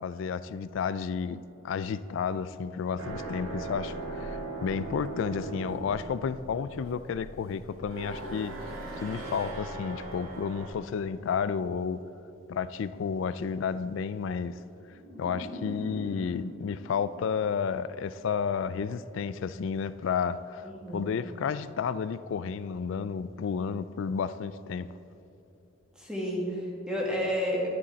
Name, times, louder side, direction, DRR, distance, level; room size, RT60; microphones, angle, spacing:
voice 1, 0.0-12.0 12.5-14.6 15.2-24.9, left 6 dB, 65° left, 15 dB, 0.3 m, -32 dB
sound 1, 3.0-10.7, right 2 dB, 85° right, 1.7 m, -39 dB
sound 2, 14.9-18.0, left 1 dB, 65° right, 2.3 m, -43 dB
voice 2, 20.6-21.1 26.0-27.7, equal, 5° right, -4 dB, 1.8 m, -31 dB
11.0 x 10.0 x 4.1 m, 2.9 s
head